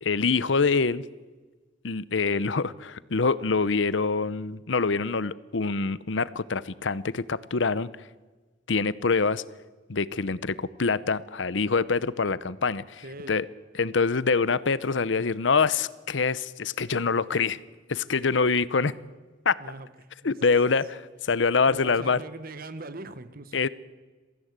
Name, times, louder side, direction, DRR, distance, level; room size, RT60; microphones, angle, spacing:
voice 1, 0.0-1.0 1.8-7.9 8.7-9.4 9.9-13.0 13.3-13.5 13.8-17.6 17.9-18.9 19.4-19.5 20.2-20.8 21.2-22.2 23.5-23.7, left 4 dB, 75° left, 18 dB, 0.8 m, -25 dB
voice 2, 13.0-13.3 19.6-20.5 21.7-23.6, right 2 dB, 50° right, 13 dB, 1.3 m, -41 dB
23.5 x 15.5 x 8.1 m, 1.3 s
head